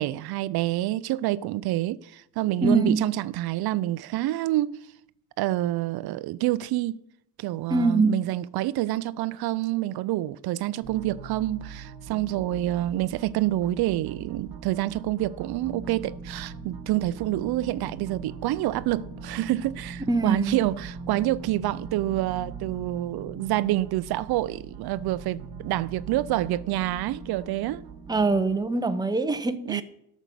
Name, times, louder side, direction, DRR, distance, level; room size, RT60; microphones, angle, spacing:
voice 1, 0.0-4.8 5.4-7.0 7.4-27.8 29.7-29.8, right 15 dB, 85° right, 0.5 m, -27 dB
voice 2, 2.6-3.0 7.7-8.1 20.1-20.6 28.1-29.8, right 3 dB, 10° right, 0.7 m, -23 dB
sound 1, 10.8-28.6, right 4 dB, 60° right, 1.2 m, -41 dB
13.0 x 6.3 x 6.8 m
cardioid pair, 125°, 37 cm